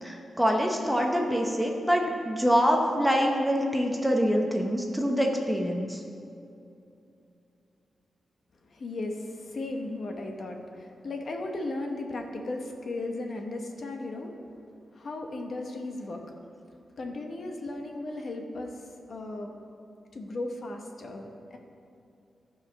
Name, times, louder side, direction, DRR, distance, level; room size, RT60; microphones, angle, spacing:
voice 1, 0.0-6.0, equal, 5° right, 1 dB, 0.8 m, -25 dB
voice 2, 8.7-14.4 14.9-16.3 17.0-19.6 20.1-21.6, left 2 dB, 45° left, 2 dB, 1.0 m, -36 dB
15.0 x 5.0 x 5.2 m, 2.7 s
wide cardioid pair, 155°, 0 cm